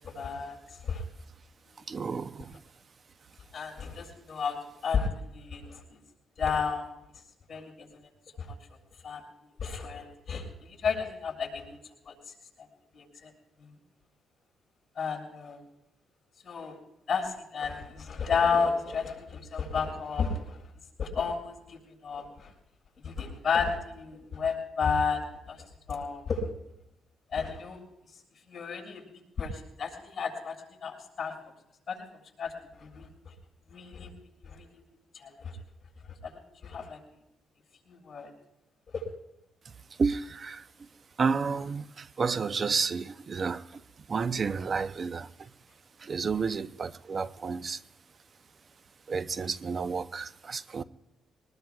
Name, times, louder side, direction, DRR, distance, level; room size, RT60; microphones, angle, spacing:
voice 1, 0.1-0.6 0.8-1.0 3.5-4.6 4.8-5.8 6.4-6.9 7.5-7.7 8.4-8.5 9.0-9.2 9.6-11.6 12.0-12.1 12.9-13.3 13.6-13.7 14.9-15.6 16.4-16.8 17.1-20.6 21.0-22.5 23.0-25.6 25.9-26.4 27.3-27.8 28.5-29.0 29.4-31.3 31.9-32.0 32.4-32.5 32.8-33.1 33.7-34.1 34.4-34.6 35.2-35.5 36.2-36.3 36.6-37.0 37.9-38.3 38.9-39.0, left 5 dB, 40° left, 7.0 m, -32 dB
voice 2, 1.9-2.6 40.0-40.6 41.2-43.8 44.1-45.5 46.0-47.8 49.1-50.8, right 5 dB, 40° right, 0.6 m, -31 dB
23.5 x 20.0 x 2.4 m
cardioid pair, 90°, 0 cm